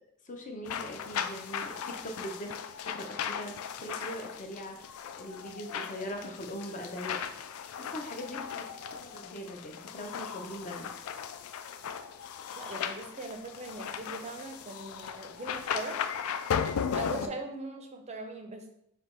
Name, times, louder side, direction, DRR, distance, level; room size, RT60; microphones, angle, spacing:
voice 1, 0.3-4.8 5.2-7.2 7.7-8.7 9.0-10.9 17.1-17.3, equal, 35° left, 3 dB, 0.6 m, -41 dB
sound 1, 0.7-17.3, left 7 dB, 70° left, 0.3 m, -37 dB
voice 2, 12.6-16.0 16.9-18.7, right 2 dB, 30° right, 5 dB, 0.5 m, -40 dB
3.3 x 2.9 x 4.3 m, 0.76 s
head